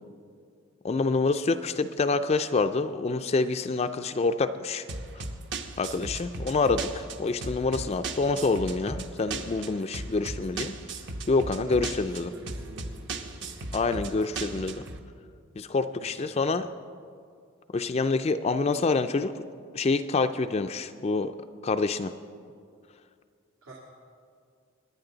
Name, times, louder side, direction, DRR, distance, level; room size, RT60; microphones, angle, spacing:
voice 1, 0.8-4.8 5.8-10.7 11.3-12.3 13.7-14.8 15.6-16.7 17.7-19.5 19.7-21.3 21.6-22.1, left 3 dB, 30° left, 8 dB, 0.3 m, -27 dB
sound 1, 4.9-15.0, right 3 dB, 55° right, 0.9 m, -37 dB
voice 2, 11.8-13.6 15.9-16.2 23.6-23.7, right 1 dB, 85° right, -5 dB, 2.2 m, -48 dB
23.5 x 10.0 x 3.9 m, 2.2 s
head